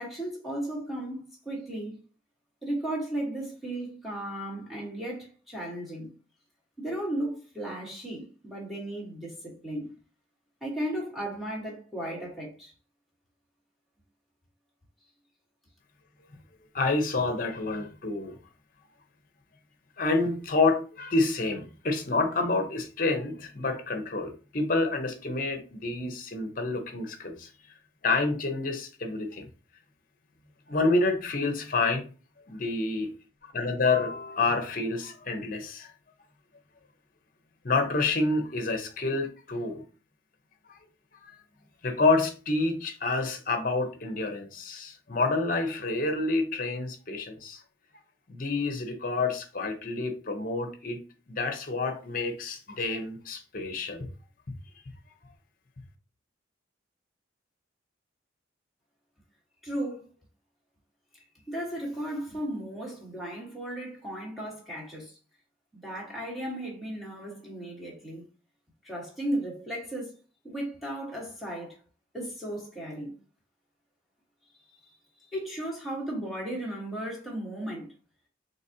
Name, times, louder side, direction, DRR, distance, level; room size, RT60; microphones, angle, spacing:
voice 1, 0.0-2.0 2.6-6.1 6.8-9.9 10.6-12.7 59.6-60.1 61.5-65.2 65.7-68.2 68.8-70.1 70.4-71.8 72.1-73.1 75.3-77.9, right 1 dB, ahead, 1.3 m, -35 dB
voice 2, 16.7-18.4 20.0-27.5 28.0-29.5 30.7-32.0 32.5-33.1 33.4-35.9 37.6-39.8 40.7-40.8 41.2-41.4 41.8-47.6 48.3-51.0 51.3-54.1, left 3 dB, 45° left, 0.7 m, -28 dB
4.0 x 3.3 x 2.7 m
head